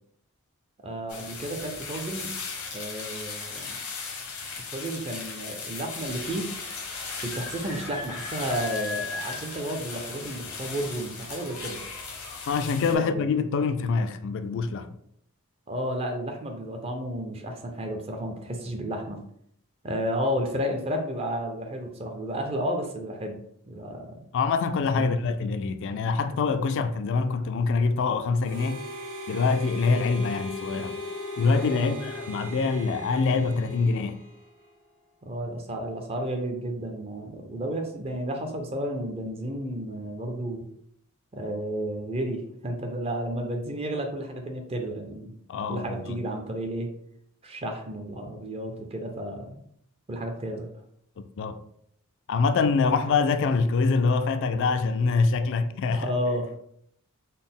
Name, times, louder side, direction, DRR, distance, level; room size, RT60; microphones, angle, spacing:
voice 1, 0.8-2.3 2.7-3.8 4.7-6.5 7.2-11.8 12.8-13.3 15.7-19.2 19.8-23.4 23.7-24.2 25.0-25.1 31.7-31.9 35.2-40.7 41.3-45.3 45.7-46.9 47.4-49.6 50.1-50.7 55.9-56.5, equal, 25° right, 0.4 m, -32 dB
sound 1, 1.1-13.0, left 4 dB, 85° left, 0.9 m, -37 dB
voice 2, 12.5-14.9 24.3-28.8 29.3-31.0 31.4-34.2 45.5-46.2 51.2-51.6 52.3-56.1, left 4 dB, 55° left, 0.3 m, -25 dB
Harmonica, 28.4-34.8, left 2 dB, 80° right, 1.4 m, -38 dB
4.0 x 2.0 x 3.6 m
head